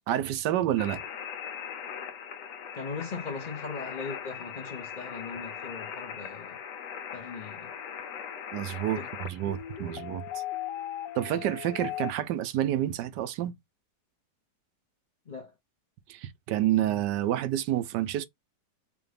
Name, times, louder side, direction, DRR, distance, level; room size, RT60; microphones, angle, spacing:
voice 1, 0.1-1.0 8.5-10.4 11.1-13.5 16.1-18.2, right 12 dB, 80° right, 1.2 m, -29 dB
sound 1, 0.8-12.1, left 9 dB, 80° left, 1.4 m, -39 dB
voice 2, 2.7-6.6 7.1-7.7 9.0-9.1 15.3-15.5, left 4 dB, 50° left, 0.5 m, -39 dB
4.8 x 2.5 x 3.3 m
omnidirectional pair, 1.8 m